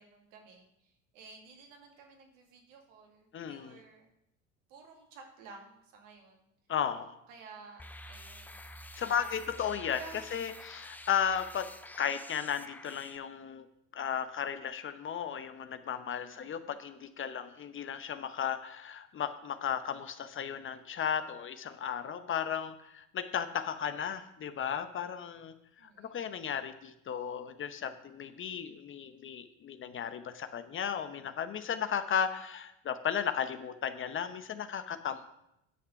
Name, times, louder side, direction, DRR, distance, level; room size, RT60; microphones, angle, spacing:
voice 1, 0.0-4.1 4.7-6.5 7.3-7.8 8.1-8.7 9.0-9.3 10.0-10.3 16.3-16.7 25.8-26.3, right 4 dB, 70° right, 1 dB, 2.4 m, -53 dB
voice 2, 3.3-3.8 6.7-7.2 9.0-10.0 10.3-11.7 12.0-13.7 13.9-35.3, left 8 dB, 30° left, 10 dB, 0.8 m, -35 dB
sound 1, 7.8-13.2, left 1 dB, 5° left, 0.5 m, -49 dB
10.0 x 5.9 x 5.7 m, 0.81 s
hypercardioid pair, 75°, 39 cm